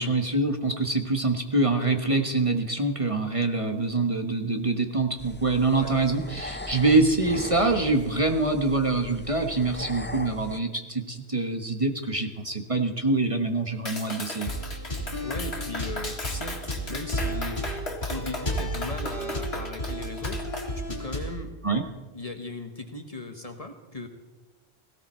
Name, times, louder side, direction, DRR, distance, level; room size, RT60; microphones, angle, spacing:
voice 1, 0.0-14.5 21.6-21.8, right 3 dB, 30° right, 5 dB, 1.3 m, -25 dB
sound 1, 5.2-10.6, left 1 dB, 15° left, 0.6 m, -39 dB
Clapping, 13.9-20.7, left 2 dB, 70° left, 2.3 m, -36 dB
sound 2, 14.5-21.4, equal, 55° left, 3.5 m, -32 dB
voice 2, 15.2-16.6 16.9-17.7 18.1-20.4 20.9-21.6 22.1-24.1, left 3 dB, 35° left, 6 dB, 1.4 m, -38 dB
17.5 x 17.0 x 4.4 m, 1.2 s
omnidirectional pair, 1.1 m